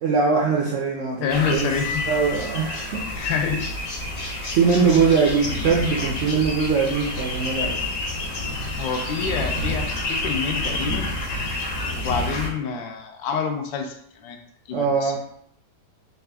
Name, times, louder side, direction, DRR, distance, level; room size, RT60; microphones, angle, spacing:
voice 1, 0.0-1.7 2.1-3.0 4.5-7.8 14.7-15.2, right 5 dB, 75° right, -3 dB, 0.7 m, -21 dB
voice 2, 1.2-1.9 3.1-3.7 4.7-4.9 8.8-11.1 11.9-14.4 14.7-15.2, left 6 dB, 85° left, 4 dB, 1.3 m, -27 dB
sound 1, 1.3-12.5, left 2 dB, 70° left, 1.7 m, -29 dB
Cymbal, 1.6-3.0, left 4 dB, 45° left, 1.0 m, -33 dB
4.2 x 2.4 x 3.3 m, 0.68 s
omnidirectional pair, 1.9 m